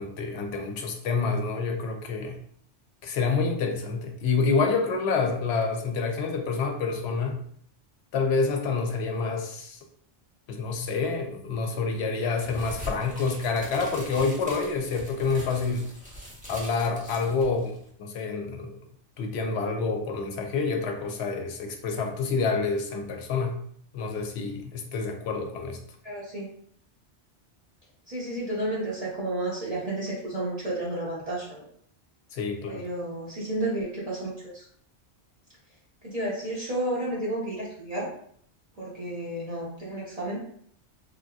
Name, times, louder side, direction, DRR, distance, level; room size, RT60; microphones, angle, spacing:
voice 1, 0.0-2.4 3.0-7.4 8.1-9.8 10.5-15.9 16.5-18.8 19.2-23.6 23.9-25.8 32.3-32.9, left 4 dB, 70° left, 4 dB, 0.8 m, -28 dB
sound 1, 12.4-17.9, equal, 10° right, 0.6 m, -42 dB
voice 2, 26.0-26.5 28.1-31.6 32.7-34.6 36.0-38.1 38.8-40.4, right 1 dB, 40° right, -7 dB, 0.8 m, -31 dB
3.4 x 2.6 x 2.3 m, 0.62 s
omnidirectional pair, 1.2 m